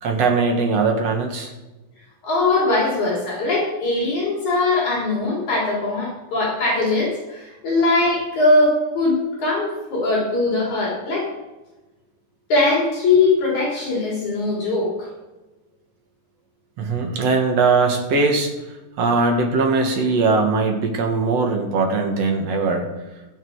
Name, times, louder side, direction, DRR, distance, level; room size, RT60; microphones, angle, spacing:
voice 1, 0.0-1.5 16.8-18.5 19.0-22.9, right 4 dB, 55° right, 3 dB, 2.7 m, -20 dB
voice 2, 2.2-11.3 12.5-15.1, left 2 dB, 65° left, -5 dB, 5.1 m, -21 dB
22.0 x 7.4 x 4.8 m, 1.1 s
omnidirectional pair, 3.6 m